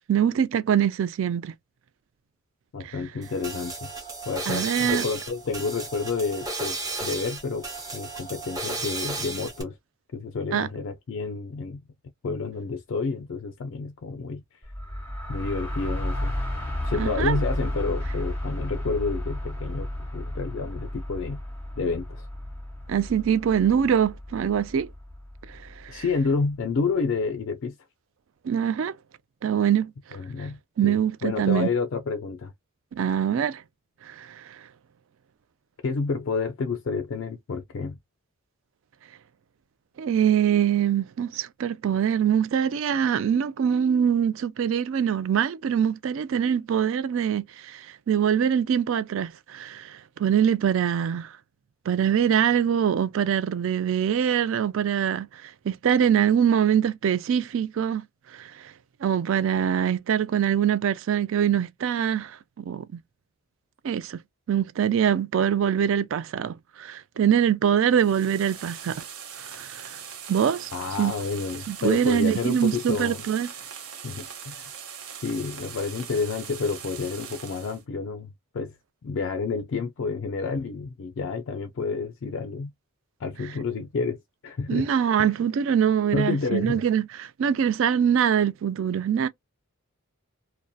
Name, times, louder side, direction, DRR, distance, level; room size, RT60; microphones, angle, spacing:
voice 1, 0.1-1.5 2.8-3.0 4.5-5.0 10.5-10.7 17.0-17.4 22.9-24.9 25.5-26.0 28.4-29.0 29.4-29.9 30.8-31.7 33.0-33.6 34.0-34.6 40.0-51.3 51.9-58.0 58.3-58.7 59.0-62.8 63.8-64.2 64.5-69.0 69.4-70.0 70.3-70.7 71.0-71.1 71.7-73.5 84.7-89.3, right 8 dB, 60° right, 0.3 m, -24 dB
voice 2, 2.7-3.9 4.3-7.7 7.9-9.8 10.1-11.8 12.2-14.4 15.3-16.3 16.8-19.9 20.1-21.4 21.8-22.3 25.9-27.8 30.1-32.5 35.8-38.0 70.7-73.2 74.0-74.7 75.2-78.7 79.0-82.7 83.2-84.9 85.2-85.3 86.1-86.8, left 4 dB, 55° left, 0.4 m, -29 dB
sound 1, 3.2-9.6, right 3 dB, 15° right, 0.7 m, -34 dB
sound 2, 14.6-26.3, left 1 dB, 10° left, 0.9 m, -33 dB
sound 3, 67.9-77.8, right 8 dB, 85° right, 0.8 m, -41 dB
2.6 x 2.1 x 2.2 m
head